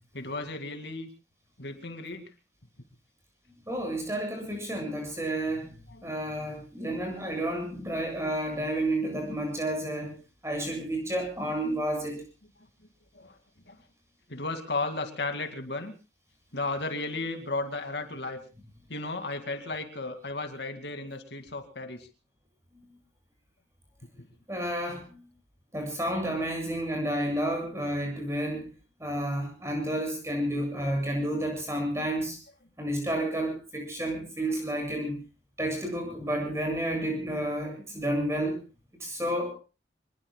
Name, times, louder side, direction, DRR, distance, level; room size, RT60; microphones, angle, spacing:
voice 1, 0.1-1.1 1.6-2.3 5.9-6.1 9.5-9.6 11.9-12.0 13.1-13.4 13.7-13.8 14.3-15.9 16.5-18.4 18.9-22.1 30.8-30.9, left 3 dB, 65° left, 6 dB, 2.3 m, -34 dB
voice 2, 3.7-10.1 10.4-12.2 24.5-25.2 25.7-28.7 29.0-32.4 32.8-35.2 35.6-38.6 39.0-39.5, right 1 dB, 15° right, 3 dB, 7.6 m, -31 dB
26.5 x 20.5 x 2.3 m, 0.33 s
head